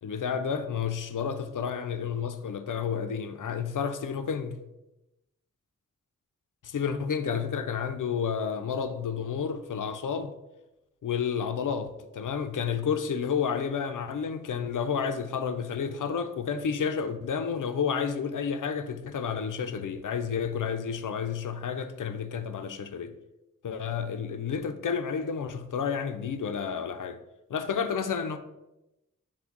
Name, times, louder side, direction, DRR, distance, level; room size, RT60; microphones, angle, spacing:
voice 1, 0.0-4.6 6.6-10.3 11.0-23.1 23.6-27.2 27.5-28.4, left 6 dB, 70° left, 0.5 m, -31 dB
5.8 x 2.2 x 3.8 m
wide cardioid pair, 50°, 32 cm